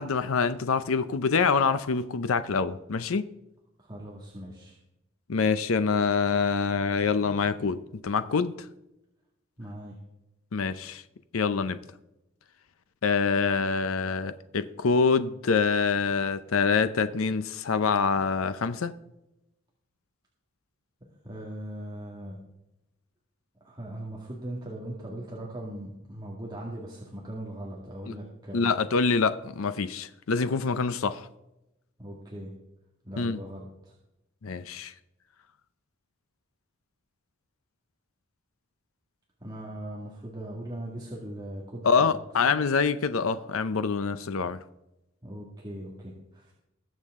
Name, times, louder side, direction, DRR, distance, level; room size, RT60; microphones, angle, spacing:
voice 1, 0.0-3.3 5.3-8.7 10.5-11.0 11.3-11.8 13.0-18.9 28.1-28.2 28.5-31.3 33.2-33.4 34.4-34.9 41.8-44.6, left 5 dB, 90° left, 0.6 m, -25 dB
voice 2, 3.8-4.8 9.6-10.0 21.2-22.4 23.6-28.7 32.0-32.5 33.0-34.0 39.4-42.1 42.4-42.5 45.2-46.5, right 1 dB, 20° right, 1.9 m, -39 dB
20.5 x 7.4 x 3.6 m
head